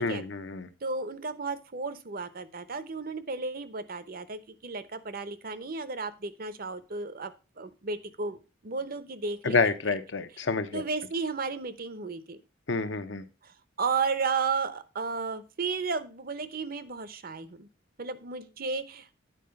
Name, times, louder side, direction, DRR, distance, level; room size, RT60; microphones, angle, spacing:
voice 1, 0.0-0.7 9.4-10.8 12.7-13.2, left 4 dB, 65° left, 10 dB, 0.9 m, -28 dB
voice 2, 0.8-7.3 7.6-10.0 10.7-12.4 13.4-17.7 18.0-19.1, right 4 dB, 45° right, 13 dB, 0.8 m, -33 dB
9.2 x 4.8 x 5.2 m, 0.31 s
head